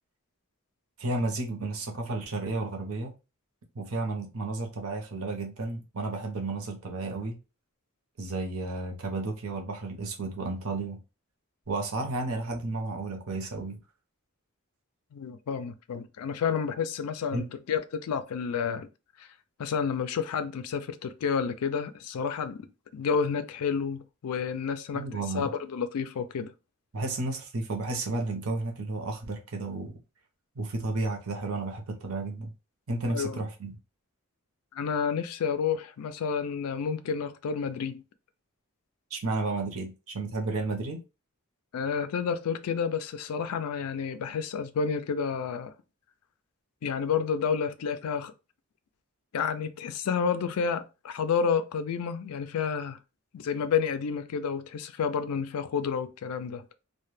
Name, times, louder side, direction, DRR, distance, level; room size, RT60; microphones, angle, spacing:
voice 1, 1.0-3.2 3.7-7.4 8.2-11.0 11.7-13.8 17.3-17.4 24.9-25.5 26.9-30.0 30.6-32.5 32.9-33.8 39.1-41.0, right 2 dB, 70° right, 0.7 m, -32 dB
voice 2, 15.1-18.9 19.2-19.3 19.6-22.7 22.9-25.1 25.3-26.5 33.1-33.4 34.7-38.0 41.7-45.7 46.8-48.3 49.3-53.0 53.3-56.7, left 6 dB, 80° left, 0.4 m, -30 dB
2.1 x 2.1 x 3.0 m
head